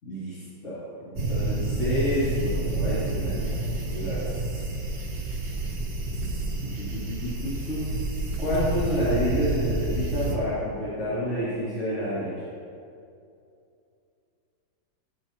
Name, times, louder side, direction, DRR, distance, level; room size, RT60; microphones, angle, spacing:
voice 1, 0.0-3.6 3.8-4.4 6.6-7.9 8.4-12.3, equal, 35° left, -12 dB, 3.3 m, -29 dB
sound 1, 1.2-10.4, right 2 dB, 55° right, 1.8 m, -29 dB
16.5 x 8.6 x 3.0 m, 2.5 s
omnidirectional pair, 2.2 m